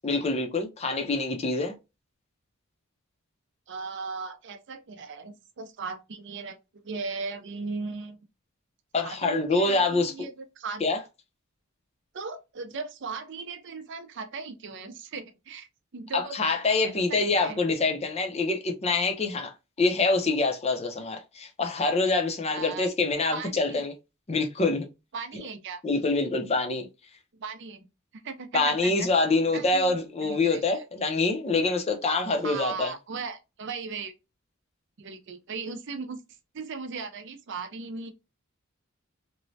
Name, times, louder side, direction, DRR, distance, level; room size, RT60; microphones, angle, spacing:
voice 1, 0.0-1.7 8.9-10.1 10.8-11.0 16.1-19.5 19.8-23.9 24.3-24.9 25.8-26.9 28.5-32.9, left 3 dB, 30° left, 0.6 m, -25 dB
voice 2, 3.7-6.6 6.8-8.2 9.0-10.8 12.1-15.7 15.9-17.6 22.5-22.9 23.3-23.8 25.1-25.8 27.4-27.9 28.2-29.1 29.5-30.9 32.4-34.1 35.0-36.2 36.5-38.1, right 4 dB, 60° right, 0.5 m, -37 dB
3.1 x 2.1 x 2.6 m
head